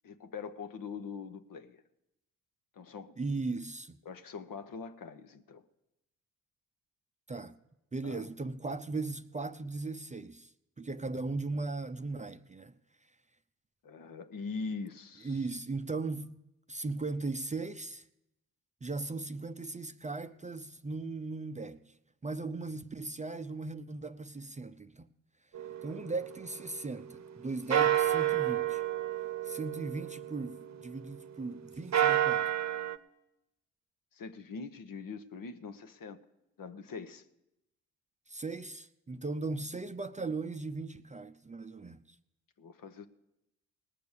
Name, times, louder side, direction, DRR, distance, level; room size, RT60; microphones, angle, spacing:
voice 1, 0.0-1.8 2.7-3.2 4.0-5.6 8.0-8.3 13.8-15.4 34.1-36.2 36.6-37.2 42.6-43.1, left 5 dB, 55° left, 1.1 m, -42 dB
voice 2, 3.2-4.0 7.3-7.6 7.9-12.7 15.2-16.3 16.7-18.0 18.8-21.9 22.2-25.1 25.8-28.8 29.4-32.5 38.3-42.2, right 3 dB, 20° right, 0.6 m, -38 dB
sound 1, 25.6-27.3 27.7-31.2 31.7-33.0, right 11 dB, 40° right, 0.9 m, -31 dB
19.0 x 6.7 x 6.7 m
hypercardioid pair, 45°, 41 cm